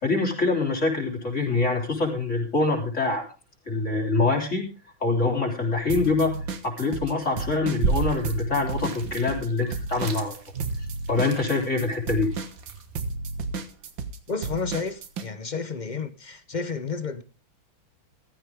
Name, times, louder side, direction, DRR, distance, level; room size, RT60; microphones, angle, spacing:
voice 1, 0.0-3.2 3.7-4.7 5.0-10.4 11.1-12.3, left 3 dB, 35° left, 4.0 m, -25 dB
sound 1, 5.9-7.1 7.4-15.3, right 3 dB, 70° right, 2.1 m, -32 dB
sound 2, 7.8-13.0, right 4 dB, 45° right, 2.0 m, -32 dB
voice 2, 14.3-17.2, left 4 dB, 65° left, 0.4 m, -31 dB
15.5 x 13.5 x 3.6 m
omnidirectional pair, 2.2 m